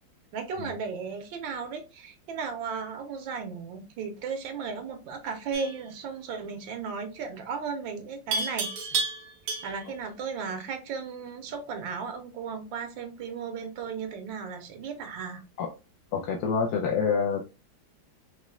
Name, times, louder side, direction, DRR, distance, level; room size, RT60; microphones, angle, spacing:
voice 1, 0.3-9.0 9.6-15.4, right 5 dB, 85° right, 6 dB, 1.5 m, -35 dB
Livestock farm animals working animals, 5.5-5.9 8.3-9.9, right 4 dB, 65° right, 1.2 m, -31 dB
voice 2, 16.1-17.4, left 6 dB, 70° left, 1 dB, 1.0 m, -27 dB
4.0 x 3.1 x 2.3 m, 0.30 s
omnidirectional pair, 2.0 m